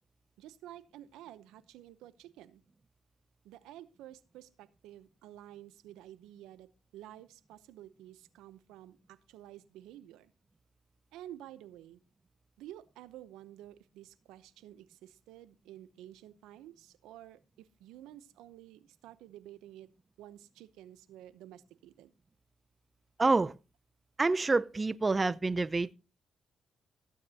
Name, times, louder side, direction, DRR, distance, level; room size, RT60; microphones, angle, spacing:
voice 1, 0.4-2.6 3.4-10.3 11.1-12.0 12.6-19.9 20.2-22.1, right 13 dB, 85° right, 0.8 m, -51 dB
voice 2, 23.2-23.5 24.2-25.9, right 3 dB, 30° right, 0.5 m, -27 dB
15.0 x 9.1 x 2.9 m
supercardioid pair, 60°, 0 cm